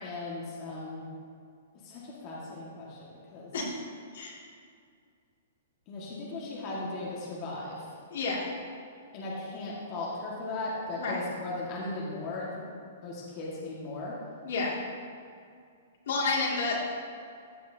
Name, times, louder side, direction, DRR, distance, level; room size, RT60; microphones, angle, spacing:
voice 1, 0.0-1.1 1.8-3.5 5.9-7.8 9.1-12.6 13.0-14.1, left 2 dB, 30° left, -6 dB, 1.6 m, -37 dB
voice 2, 8.1-8.5 11.0-11.2 14.4-14.8 16.1-16.8, left 3 dB, 65° left, -3 dB, 2.2 m, -30 dB
14.0 x 7.7 x 2.7 m, 2.2 s
hypercardioid pair, 160°, 0 cm